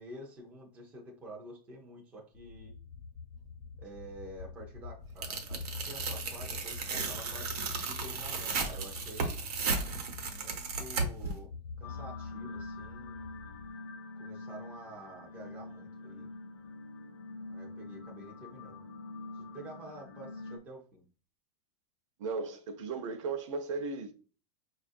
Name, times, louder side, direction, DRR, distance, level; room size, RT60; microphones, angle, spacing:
voice 1, 0.0-2.7 3.8-9.3 10.2-11.5 11.8-13.3 14.2-16.3 17.5-18.8 19.3-21.0, right 1 dB, 5° right, 0.4 m, -49 dB
sound 1, 2.3-13.7, left 4 dB, 70° left, 0.8 m, -46 dB
Tearing, 5.2-11.3, right 4 dB, 80° right, 0.9 m, -35 dB
sound 2, 11.8-20.6, left 2 dB, 30° left, 0.6 m, -45 dB
voice 2, 22.2-24.1, right 4 dB, 50° right, 0.7 m, -36 dB
5.1 x 2.4 x 2.5 m
supercardioid pair, 175°, 20 cm